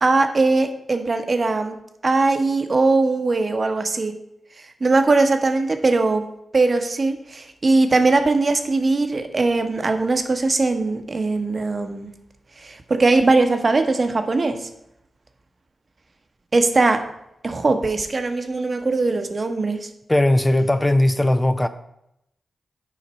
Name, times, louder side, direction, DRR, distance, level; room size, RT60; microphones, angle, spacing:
voice 1, 0.0-1.7 2.0-4.1 4.8-6.2 6.5-12.1 12.6-14.7 16.5-17.0 17.4-19.9, right 3 dB, 50° right, 7 dB, 0.9 m, -20 dB
voice 2, 20.1-21.7, left 1 dB, 20° left, 10 dB, 0.5 m, -18 dB
7.0 x 5.0 x 4.2 m, 0.81 s
cardioid pair, 50°, 0 cm